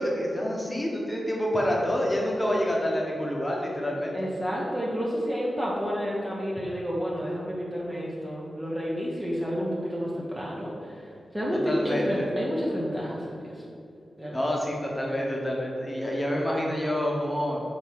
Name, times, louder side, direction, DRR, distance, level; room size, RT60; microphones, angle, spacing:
voice 1, 0.0-4.2 11.6-12.1 14.3-17.6, equal, 10° left, -3 dB, 1.2 m, -27 dB
voice 2, 4.1-11.1 11.3-13.6 14.2-14.5, equal, 10° right, -5 dB, 0.8 m, -30 dB
5.4 x 4.3 x 6.0 m, 2.6 s
wide cardioid pair, 150°, 0 cm